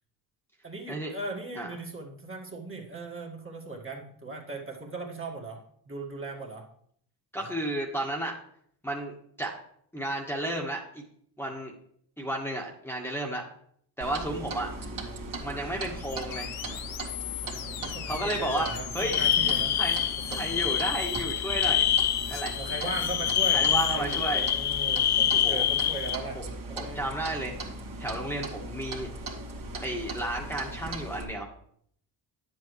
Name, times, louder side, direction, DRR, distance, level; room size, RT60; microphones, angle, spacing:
voice 1, 0.6-6.7 7.4-7.5 17.4-19.8 20.3-20.7 22.6-26.4 26.7-27.1, right 2 dB, 25° right, -1 dB, 2.2 m, -38 dB
voice 2, 7.3-8.3 8.8-9.5 9.9-11.0 11.4-11.7 12.2-13.5 14.0-14.7 15.4-16.5 18.1-18.7 18.9-19.3 19.8-21.9 22.3-22.5 23.5-24.5 25.3-25.6 26.8-27.6 28.0-29.1 29.8-31.5, right 1 dB, 5° left, -2 dB, 1.8 m, -32 dB
Clock, 14.0-31.2, right 1 dB, 45° right, 2.3 m, -38 dB
sound 1, 16.0-23.9, left 12 dB, 70° left, 0.8 m, -39 dB
sound 2, 19.0-26.2, left 10 dB, 40° left, 0.5 m, -26 dB
9.7 x 7.7 x 3.3 m, 0.65 s
supercardioid pair, 65°, 47 cm